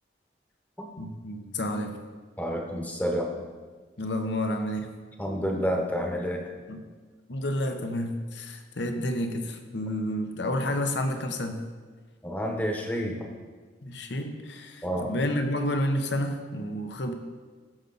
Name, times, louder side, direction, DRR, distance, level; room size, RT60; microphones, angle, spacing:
voice 1, 1.0-1.9 4.0-4.9 6.7-6.8 7.3-11.7 13.8-17.1, left 1 dB, 70° left, 6 dB, 0.9 m, -30 dB
voice 2, 2.4-3.4 5.2-6.4 12.2-13.2 14.8-15.1, equal, 10° left, 1 dB, 1.0 m, -29 dB
14.0 x 5.4 x 4.0 m, 1.4 s
head